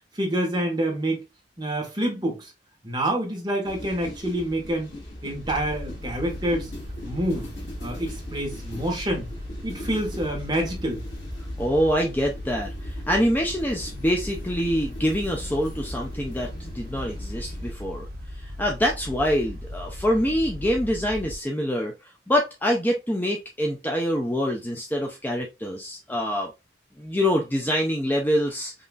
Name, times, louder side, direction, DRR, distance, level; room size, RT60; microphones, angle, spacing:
voice 1, 0.1-1.2 1.6-2.5 2.8-4.9 5.2-6.7 7.0-7.5 7.8-9.3 9.6-11.0, right 1 dB, 25° right, 1.5 m, -27 dB
sound 1, 3.6-17.7, left 1 dB, 75° left, 2.7 m, -40 dB
sound 2, 5.4-21.3, left 1 dB, 55° right, 1.1 m, -37 dB
voice 2, 11.6-16.5 16.7-18.1 18.4-21.9 22.3-26.5 27.0-28.7, equal, 10° left, 0.6 m, -25 dB
5.3 x 2.9 x 2.4 m
head